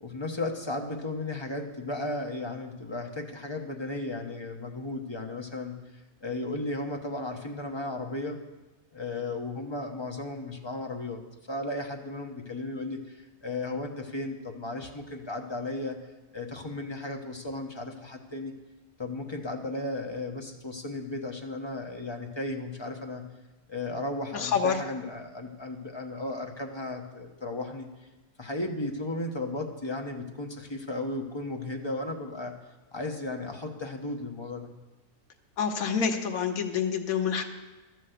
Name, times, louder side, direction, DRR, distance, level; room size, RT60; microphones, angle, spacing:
voice 1, 0.0-8.4 8.9-11.2 11.5-16.0 16.3-18.5 19.0-23.2 23.7-28.1 28.4-32.6 32.9-34.7, left 2 dB, 20° left, 2 dB, 0.9 m, -35 dB
voice 2, 24.3-24.8 35.6-37.4, left 7 dB, 75° left, 4 dB, 1.4 m, -27 dB
12.5 x 6.3 x 7.9 m, 1.1 s
omnidirectional pair, 1.5 m